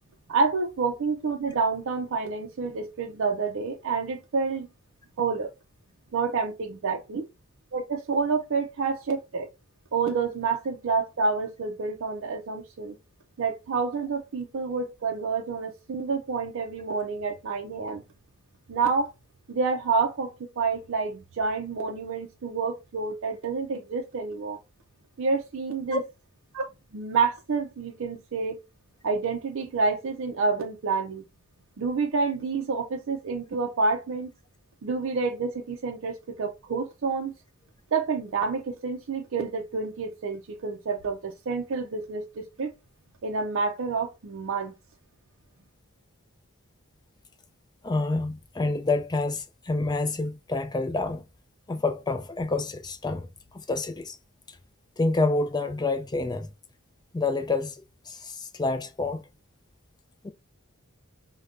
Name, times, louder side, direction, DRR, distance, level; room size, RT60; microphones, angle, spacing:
voice 1, 0.3-4.7 5.2-5.5 6.1-7.2 7.7-9.5 9.9-13.0 13.4-18.0 18.7-19.1 19.5-24.6 25.2-26.0 26.5-26.7 26.9-28.6 29.0-31.2 31.8-34.3 34.8-37.3 37.9-42.7 43.2-44.7, right 4 dB, 60° right, 0.5 m, -28 dB
voice 2, 47.8-51.2 51.7-53.3 53.5-54.2 55.0-56.5 57.1-59.3 60.2-60.3, left 3 dB, 20° left, 0.4 m, -28 dB
5.0 x 2.2 x 2.5 m
head